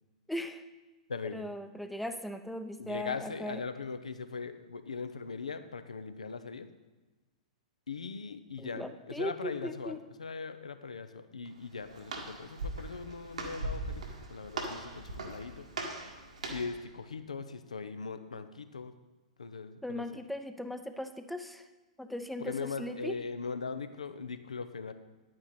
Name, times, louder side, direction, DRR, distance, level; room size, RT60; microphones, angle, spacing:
voice 1, 0.3-0.6 1.3-3.6 8.6-10.0 19.8-21.7 22.0-23.2, left 1 dB, ahead, 8 dB, 0.6 m, -38 dB
voice 2, 1.1-1.5 2.8-6.7 7.9-9.9 10.2-14.0 14.3-15.6 16.5-18.9 19.4-20.0 22.4-24.9, left 5 dB, 75° left, 10 dB, 0.7 m, -40 dB
Walk footsteps, 11.5-16.8, right 2 dB, 70° right, 1.6 m, -40 dB
10.5 x 8.9 x 4.2 m, 1.2 s
figure-of-eight pair, 105°, 4 cm